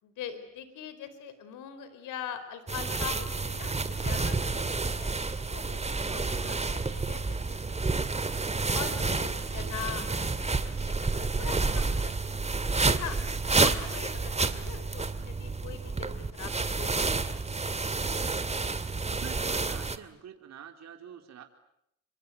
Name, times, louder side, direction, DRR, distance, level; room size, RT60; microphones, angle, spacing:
voice 1, 0.0-5.1 5.5-7.7 8.7-12.4 12.9-13.2 13.6-16.9 17.3-17.4, left 9 dB, 90° left, 11 dB, 4.5 m, -42 dB
sound 1, 2.7-20.0, right 3 dB, 20° right, 2.2 m, -30 dB
voice 2, 19.1-21.4, right 8 dB, 60° right, 5 dB, 4.1 m, -47 dB
27.5 x 25.5 x 8.5 m, 0.76 s
cardioid pair, 90°, 30 cm